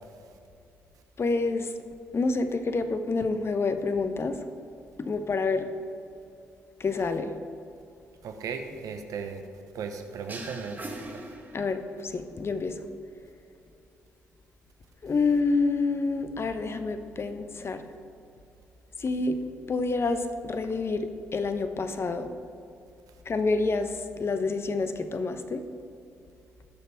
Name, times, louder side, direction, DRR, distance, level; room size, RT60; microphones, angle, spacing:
voice 1, 1.2-1.7 2.1-4.4 5.0-5.7 6.8-7.3 11.5-12.8 15.0-17.8 19.0-19.4 19.7-22.3 23.2-25.6, left 3 dB, 40° left, 9 dB, 1.0 m, -28 dB
voice 2, 8.2-9.4 9.7-11.2, right 5 dB, 65° right, 6 dB, 1.0 m, -36 dB
sound 1, 10.3-12.1, right 2 dB, 30° right, 2.0 m, -40 dB
18.5 x 6.7 x 3.5 m, 2.6 s
hypercardioid pair, 45°, 6 cm